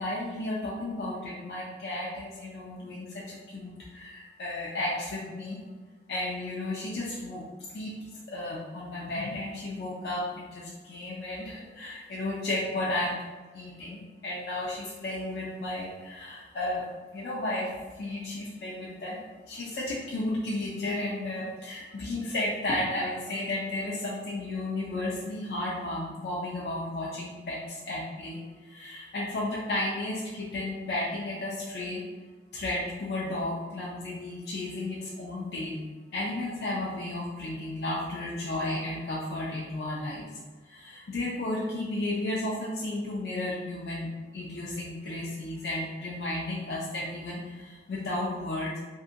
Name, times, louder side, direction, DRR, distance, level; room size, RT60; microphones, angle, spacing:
voice 1, 0.0-5.6 6.1-7.4 7.7-7.9 8.3-13.2 13.5-16.9 17.1-19.2 19.5-28.4 28.6-32.0 32.5-35.8 36.1-40.2 40.7-48.8, left 1 dB, 60° left, -5 dB, 0.4 m, -33 dB
2.7 x 2.5 x 2.4 m, 1.3 s
head